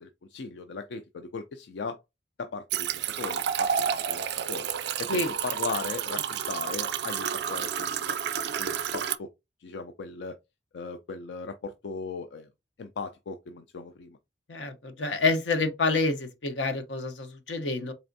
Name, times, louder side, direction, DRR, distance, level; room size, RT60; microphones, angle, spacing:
voice 1, 0.0-2.0 2.4-4.7 5.0-8.1 8.6-9.3 9.6-10.4 10.7-12.5 12.8-14.2, left 4 dB, 70° left, 0.4 m, -38 dB
sound 1, 2.7-9.2, right 8 dB, 65° right, 0.4 m, -30 dB
voice 2, 14.5-17.9, left 3 dB, 90° left, 0.8 m, -28 dB
4.1 x 3.3 x 2.6 m
head